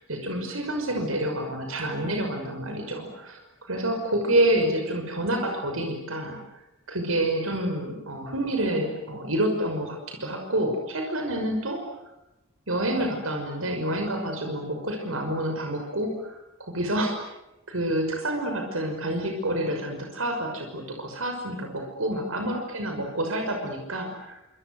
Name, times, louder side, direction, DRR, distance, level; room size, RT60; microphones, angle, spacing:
voice 1, 0.1-6.4 6.9-11.8 12.7-17.1 17.7-24.4, right 1 dB, 80° right, 4 dB, 5.9 m, -28 dB
27.0 x 27.0 x 8.0 m, 0.91 s
head